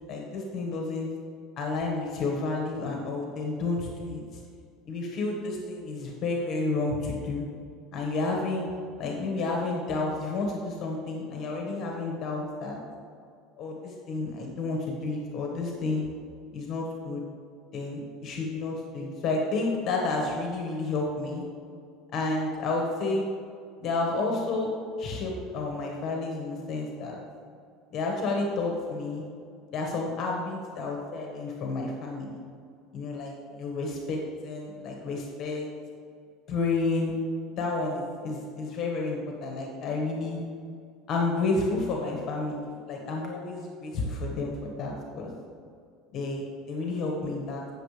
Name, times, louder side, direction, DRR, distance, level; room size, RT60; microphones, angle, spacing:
voice 1, 0.1-1.1 1.6-4.4 4.8-7.5 7.9-8.7 9.0-12.8 13.6-16.1 16.5-17.2 17.7-21.4 22.1-23.3 23.8-24.7 25.0-27.2 27.9-29.2 29.7-32.4 32.9-35.7 36.5-37.1 37.6-40.4 41.1-45.3 46.1-47.6, left 3 dB, 40° left, 0 dB, 1.5 m, -30 dB
15.5 x 6.8 x 3.3 m, 2.3 s
supercardioid pair, 140°, 0 cm